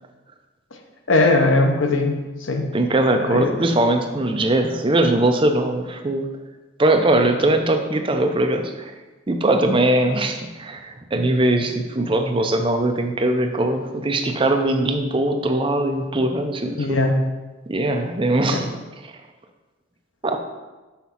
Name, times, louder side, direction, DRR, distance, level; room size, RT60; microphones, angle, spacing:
voice 1, 1.1-2.7 3.3-3.5 16.8-17.2 18.5-18.6, left 2 dB, 75° left, 4 dB, 0.7 m, -19 dB
voice 2, 2.7-6.3 6.8-8.9 9.3-17.0 17.7-18.7 19.0-19.1 20.2-20.4, right 1 dB, 25° right, 5 dB, 0.5 m, -21 dB
5.8 x 3.6 x 5.7 m, 1.2 s
head